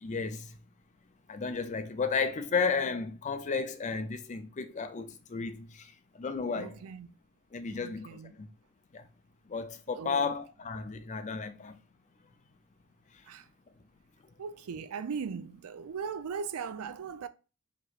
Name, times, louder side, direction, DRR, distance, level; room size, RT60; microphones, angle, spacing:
voice 1, 0.0-0.5 1.3-5.9 6.2-6.7 7.5-8.5 8.9-9.0 9.5-11.8, left 5 dB, 35° left, 0.4 m, -33 dB
voice 2, 6.5-7.2 7.7-8.3 9.9-10.4 13.3-13.5 14.4-17.3, right 6 dB, 75° right, 0.4 m, -39 dB
4.6 x 2.9 x 2.4 m
head